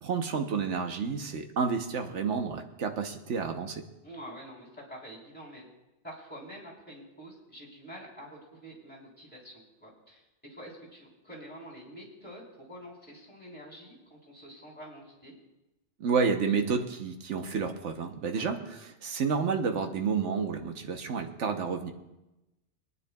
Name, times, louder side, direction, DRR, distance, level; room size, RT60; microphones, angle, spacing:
voice 1, 0.0-3.8 16.0-21.9, right 5 dB, 85° right, 5 dB, 1.3 m, -30 dB
voice 2, 4.0-5.7 6.0-10.2 10.5-15.4 18.3-18.5, equal, 10° left, -4 dB, 3.7 m, -47 dB
26.0 x 9.6 x 2.3 m, 0.97 s
omnidirectional pair, 1.2 m